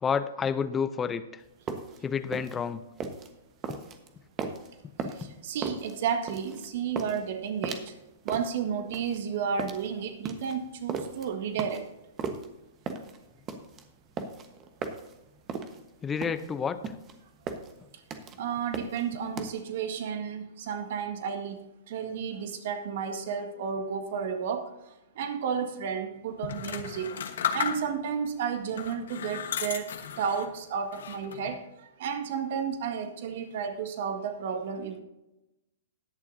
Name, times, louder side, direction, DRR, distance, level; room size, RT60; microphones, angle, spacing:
voice 1, 0.0-1.4 2.0-2.8 16.0-16.8 26.7-26.8, left 6 dB, 20° left, 11 dB, 0.6 m, -29 dB
sound 1, 1.5-19.5, right 5 dB, 30° right, 1.3 m, -37 dB
voice 2, 5.1-7.9 8.2-11.8 18.4-27.2 27.5-35.0, right 7 dB, 60° right, 6 dB, 1.6 m, -32 dB
sound 2, 26.4-28.2 28.7-30.5 30.9-31.5, left 8 dB, 70° left, 1.2 m, -34 dB
20.0 x 7.1 x 2.7 m, 0.94 s
hypercardioid pair, 115°, 0 cm